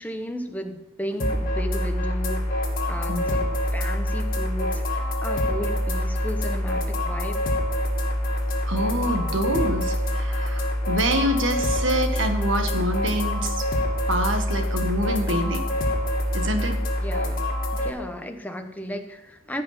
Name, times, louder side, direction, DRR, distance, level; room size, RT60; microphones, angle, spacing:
voice 1, 0.0-7.4 17.0-17.4 17.7-19.6, equal, 10° left, 5 dB, 1.0 m, -34 dB
sound 1, 1.2-17.9, left 1 dB, 45° left, 2.3 m, -25 dB
voice 2, 8.7-13.7 14.1-15.6 16.3-16.8, right 1 dB, 70° right, 5 dB, 1.7 m, -26 dB
15.5 x 5.7 x 5.9 m, 0.97 s
head